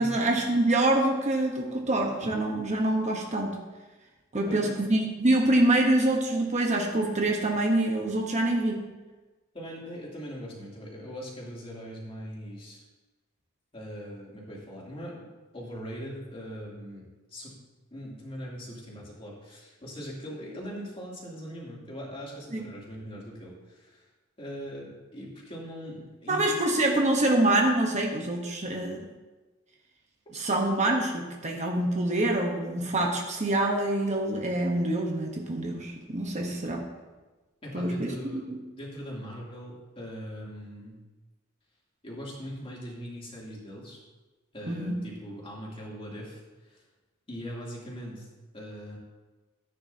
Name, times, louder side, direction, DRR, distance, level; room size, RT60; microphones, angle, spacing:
voice 1, 0.0-3.6 4.3-8.8 22.5-22.7 26.3-29.0 30.3-36.8 37.7-38.6 44.7-45.0, right 1 dB, 35° right, 1 dB, 1.1 m, -26 dB
voice 2, 9.5-12.9 13.7-15.3 15.5-17.6 17.9-24.0 24.4-26.6 30.3-30.4 37.6-41.0 42.0-44.0 44.5-46.8 47.3-48.3 48.5-49.0, equal, 25° left, -5 dB, 3.0 m, -41 dB
14.5 x 9.3 x 2.8 m, 1.2 s
head